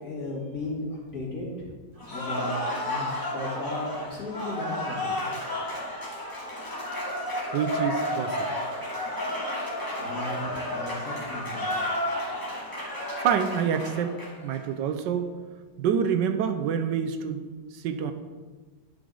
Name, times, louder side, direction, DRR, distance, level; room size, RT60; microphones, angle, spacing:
voice 1, 0.0-1.5 2.1-5.5 10.0-11.8, left 1 dB, 55° left, -4 dB, 2.4 m, -35 dB
Cheering / Applause, 2.0-14.6, left 1 dB, 10° left, 1.6 m, -32 dB
voice 2, 7.5-8.5 13.2-14.2 14.4-15.3 15.8-17.4 17.7-18.1, right 7 dB, 85° right, 8 dB, 1.3 m, -27 dB
11.0 x 5.1 x 3.8 m, 1.3 s
omnidirectional pair, 1.9 m